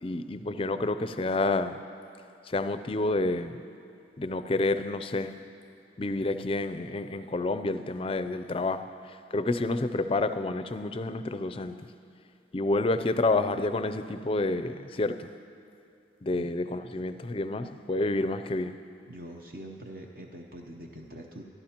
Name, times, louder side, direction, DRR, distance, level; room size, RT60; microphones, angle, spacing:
voice 1, 0.0-1.8 2.5-3.6 4.2-5.3 6.0-8.9 9.3-11.8 12.5-15.3 16.2-18.8, left 2 dB, 30° left, 11 dB, 0.4 m, -29 dB
voice 2, 19.1-21.4, right 1 dB, 55° right, 1 dB, 0.8 m, -44 dB
25.0 x 12.0 x 2.9 m, 2.7 s
head